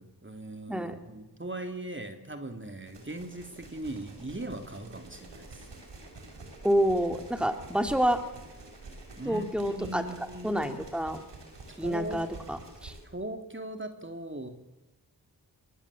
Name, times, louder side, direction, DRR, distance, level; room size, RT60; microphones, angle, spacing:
voice 1, 0.0-5.7 9.2-10.8 11.7-12.3 13.0-14.5, right 1 dB, 30° right, 6 dB, 3.1 m, -39 dB
sound 1, 2.9-13.0, right 3 dB, 90° right, 6.3 m, -48 dB
voice 2, 6.6-8.2 9.2-10.0 10.4-11.2 11.8-12.9, equal, ahead, 6 dB, 3.0 m, -28 dB
24.0 x 23.5 x 8.7 m, 1.0 s
cardioid pair, 45°, 41 cm